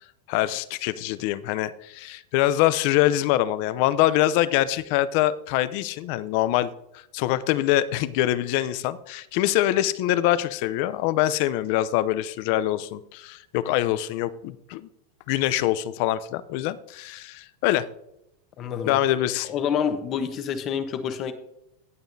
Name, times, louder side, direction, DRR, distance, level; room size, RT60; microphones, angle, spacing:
voice 1, 0.3-14.9 15.3-17.9 18.9-19.5, left 14 dB, 55° left, 16 dB, 0.6 m, -24 dB
voice 2, 18.6-19.0 19.4-21.3, left 7 dB, 35° left, 8 dB, 1.1 m, -28 dB
18.5 x 7.0 x 2.7 m, 0.80 s
supercardioid pair, 145°, 0 cm